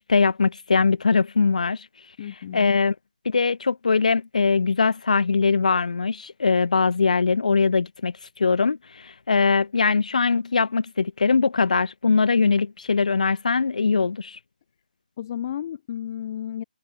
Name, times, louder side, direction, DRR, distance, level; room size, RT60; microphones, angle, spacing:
voice 1, 0.0-1.9 2.5-2.9 3.2-14.4, left 4 dB, 55° left, 3.3 m, -21 dB
voice 2, 2.2-2.8 15.2-16.6, left 10 dB, 25° left, 3.0 m, -32 dB
figure-of-eight pair, 165°, 5 cm